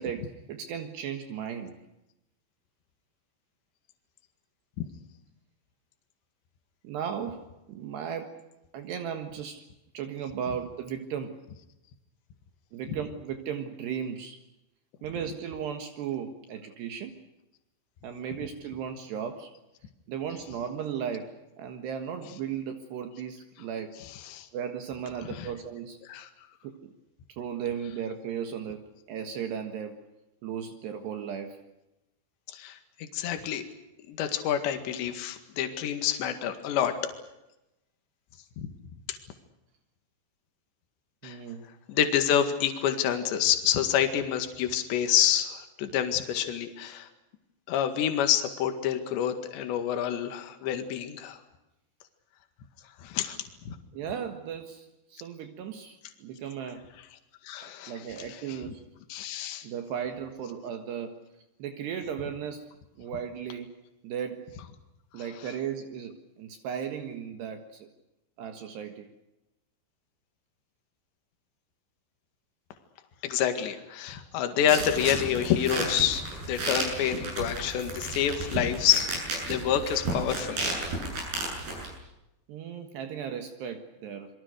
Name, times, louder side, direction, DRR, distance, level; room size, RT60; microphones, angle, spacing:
voice 1, 0.0-1.8 6.8-8.4 8.7-9.6 9.9-11.4 12.7-14.4 15.0-17.2 18.0-19.5 20.1-21.3 21.6-24.0 24.5-26.0 26.6-26.9 27.3-30.0 30.4-31.6 41.2-41.7 53.9-56.9 57.7-58.8 59.6-61.2 61.6-62.7 63.0-63.7 64.0-64.5 65.1-67.9 68.4-69.1 82.5-84.3, right 8 dB, 65° right, 6 dB, 3.5 m, -36 dB
voice 2, 32.5-33.6 34.1-36.9 38.6-38.7 39.1-39.2 41.2-41.4 41.9-47.1 47.7-51.4 53.0-53.4 53.7-53.8 57.4-58.0 58.3-58.6 59.1-59.7 65.4-65.5 73.2-76.2 76.5-79.1 79.5-80.6, left 10 dB, 70° left, 7 dB, 4.1 m, -28 dB
sound 1, 74.7-81.9, right 2 dB, 50° right, 9.7 m, -33 dB
28.0 x 23.5 x 6.5 m, 0.92 s
omnidirectional pair, 5.4 m